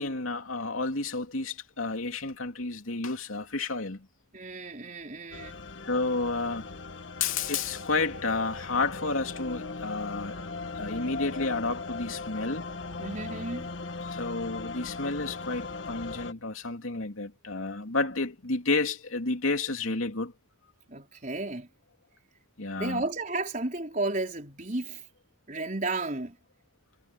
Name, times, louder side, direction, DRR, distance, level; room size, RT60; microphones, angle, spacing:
voice 1, 0.0-4.1 5.8-6.7 7.2-10.4 10.8-12.7 14.1-20.3 22.6-23.0, left 3 dB, 85° left, 2.9 m, -31 dB
voice 2, 4.3-5.6 13.0-13.7 20.9-21.7 22.8-25.0 25.5-26.4, right 2 dB, 40° right, 4.6 m, -33 dB
sound 1, 5.3-16.3, left 3 dB, 65° left, 1.5 m, -39 dB
head